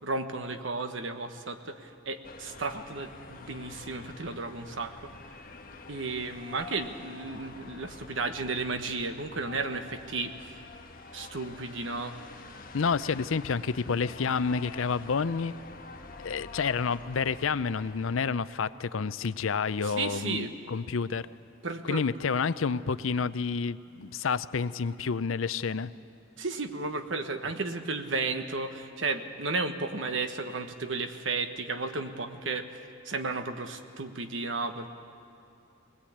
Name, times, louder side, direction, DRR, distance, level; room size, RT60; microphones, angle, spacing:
voice 1, 0.0-4.9 5.9-10.3 11.1-12.1 19.8-20.5 21.6-22.0 26.4-32.7 33.0-34.9, right 3 dB, 70° right, 7 dB, 1.3 m, -33 dB
sound 1, 2.2-18.2, left 3 dB, 45° left, 1.4 m, -47 dB
voice 2, 12.7-15.5 16.2-21.3 21.9-25.9, left 5 dB, 85° left, 15 dB, 0.6 m, -29 dB
20.5 x 20.0 x 8.7 m, 2.5 s
head